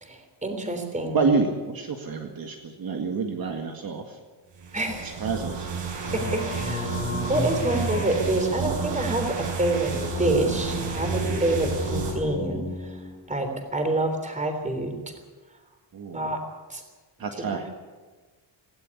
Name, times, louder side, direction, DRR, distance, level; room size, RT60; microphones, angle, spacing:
voice 1, 0.0-1.2 4.7-5.2 6.1-13.0 13.3-15.0 16.1-16.4 16.7-16.8, right 2 dB, 15° right, 5 dB, 3.5 m, -27 dB
voice 2, 1.1-4.2 5.0-5.7 15.9-16.4 17.2-17.7, right 4 dB, 50° right, 3 dB, 2.0 m, -28 dB
sound 1, 4.6-12.1, right 5 dB, 65° right, 7.2 m, -31 dB
Singing, 6.0-13.4, left 3 dB, 30° left, 3.1 m, -33 dB
18.5 x 17.0 x 9.7 m, 1.3 s
wide cardioid pair, 175°, 46 cm